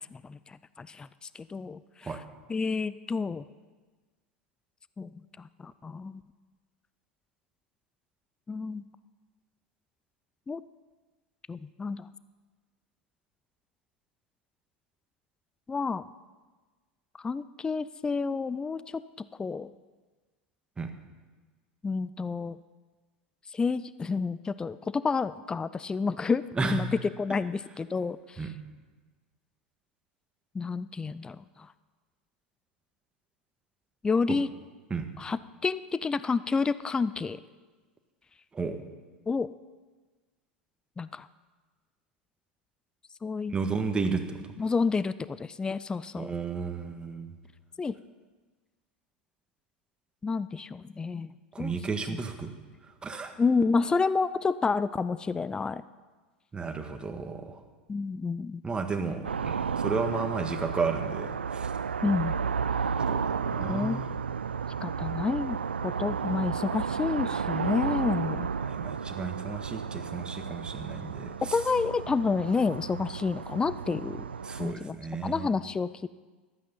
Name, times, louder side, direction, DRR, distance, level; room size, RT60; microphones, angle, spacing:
voice 1, 0.0-2.1 2.5-3.4 5.0-6.2 8.5-8.8 10.5-10.6 11.5-12.1 15.7-16.0 17.2-19.7 21.8-22.6 23.5-26.4 26.7-26.9 27.2-28.5 30.5-31.7 34.0-34.5 35.2-37.4 39.3-39.5 41.0-41.3 43.2-43.6 44.6-46.3 47.8-47.9 50.2-51.8 52.1-52.2 53.4-55.8 57.9-58.6 62.0-62.3 63.7-64.0 64.8-68.5 71.4-74.3 74.6-75.0 75.2-76.1, left 4 dB, 15° left, 16 dB, 0.4 m, -30 dB
voice 2, 26.5-26.9 28.4-28.5 34.9-35.1 38.5-38.8 43.5-44.4 46.1-47.3 51.5-52.5 53.0-53.3 56.5-57.6 58.6-61.7 63.0-64.1 68.6-71.6 74.4-75.5, right 4 dB, 15° right, 6 dB, 1.7 m, -33 dB
sound 1, 59.2-74.7, right 6 dB, 85° right, 0.4 m, -32 dB
14.5 x 12.0 x 5.6 m, 1.3 s
figure-of-eight pair, 85°, 6 cm